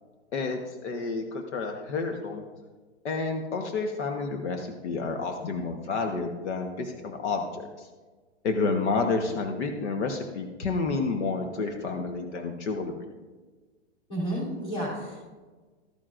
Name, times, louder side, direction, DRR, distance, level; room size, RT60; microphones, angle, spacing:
voice 1, 0.3-2.4 3.0-7.7 8.4-12.9, left 4 dB, 75° left, 4 dB, 1.2 m, -30 dB
voice 2, 14.1-15.2, right 1 dB, 15° left, -6 dB, 3.2 m, -31 dB
13.5 x 9.3 x 2.5 m, 1.3 s
hypercardioid pair, 180°, 35 cm